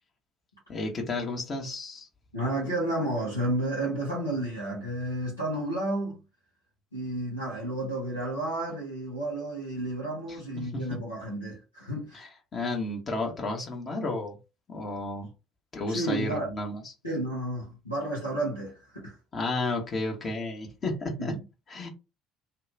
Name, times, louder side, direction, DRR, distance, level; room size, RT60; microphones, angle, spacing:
voice 1, 0.7-2.1 10.9-11.0 12.1-14.4 14.7-15.3 15.7-16.8 19.3-21.3 21.7-21.9, left 2 dB, 35° left, 1.0 m, -32 dB
voice 2, 2.3-6.2 6.9-12.3 15.9-16.5 17.0-19.2 21.2-21.4, right 1 dB, 90° left, 0.9 m, -31 dB
2.8 x 2.3 x 3.1 m
figure-of-eight pair, 55°, 0 cm